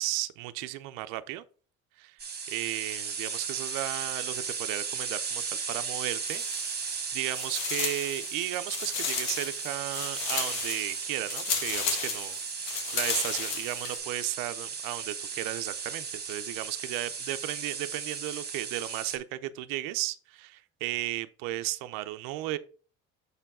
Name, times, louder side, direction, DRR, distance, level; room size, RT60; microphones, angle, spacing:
voice 1, 0.0-1.4 2.0-2.2 2.5-6.4 6.8-12.4 12.7-22.6, right 16 dB, 80° right, 0.6 m, -35 dB
sound 1, 2.2-19.2, right 6 dB, 30° right, 1.4 m, -36 dB
sound 2, 6.2-7.0 7.3-14.0, left 6 dB, 85° left, 1.6 m, -34 dB
6.8 x 4.5 x 3.6 m
supercardioid pair, 80°, 32 cm